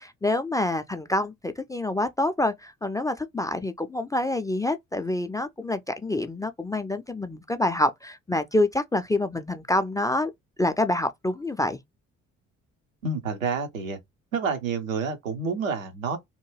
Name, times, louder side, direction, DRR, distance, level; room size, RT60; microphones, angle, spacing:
voice 1, 0.0-10.3 10.6-11.8, left 1 dB, 10° left, 0.3 m, -27 dB
voice 2, 13.0-14.0 14.3-16.2, right 5 dB, 85° right, 0.7 m, -28 dB
2.8 x 2.2 x 3.1 m
figure-of-eight pair, 40°, 39 cm